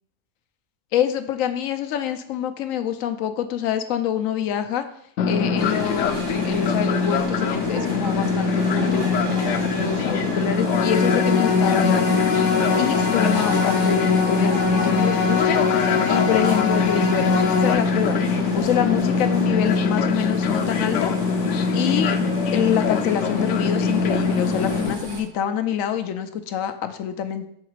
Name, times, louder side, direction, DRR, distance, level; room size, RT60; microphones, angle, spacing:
voice 1, 0.9-4.9 5.3-12.2 12.8-15.6 16.1-18.2 18.5-21.1 21.7-22.2 22.5-27.5, left 9 dB, 90° left, 9 dB, 1.0 m, -26 dB
Fixed-wing aircraft airplane, 5.2-24.9, left 4 dB, 70° left, 0.9 m, -23 dB
sound 1, 5.6-25.2, right 2 dB, 70° right, 1.5 m, -34 dB
sound 2, 10.7-17.7, left 5 dB, 55° left, 0.5 m, -23 dB
6.5 x 4.0 x 4.6 m, 0.70 s
omnidirectional pair, 1.4 m